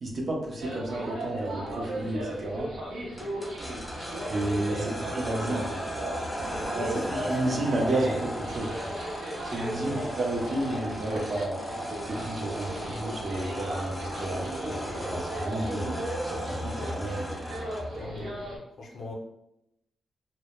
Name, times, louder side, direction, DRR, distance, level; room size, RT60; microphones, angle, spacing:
voice 1, 0.0-2.7 4.3-5.8 6.8-8.7 9.4-11.6 12.1-17.4, right 1 dB, 50° right, 0 dB, 0.6 m, -31 dB
sound 1, 0.6-18.6, right 1 dB, 85° right, 0.8 m, -36 dB
sound 2, 3.2-18.0, equal, 5° left, 0.5 m, -36 dB
voice 2, 6.8-7.8 9.8-10.0 17.9-18.4 18.8-19.1, left 2 dB, 70° left, -1 dB, 0.6 m, -39 dB
2.1 x 2.1 x 2.9 m, 0.82 s
cardioid pair, 80°, 0 cm